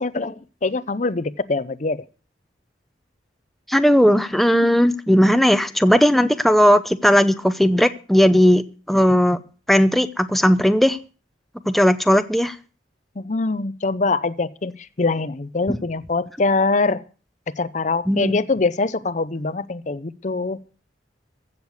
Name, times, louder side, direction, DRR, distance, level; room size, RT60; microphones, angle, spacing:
voice 1, 0.0-2.0 13.2-17.0 17.5-20.6, left 3 dB, 40° left, 14 dB, 0.6 m, -23 dB
voice 2, 3.7-9.4 9.7-11.0 11.7-12.5 18.1-18.4, equal, ahead, 9 dB, 0.7 m, -17 dB
15.5 x 6.7 x 8.1 m, 0.38 s
head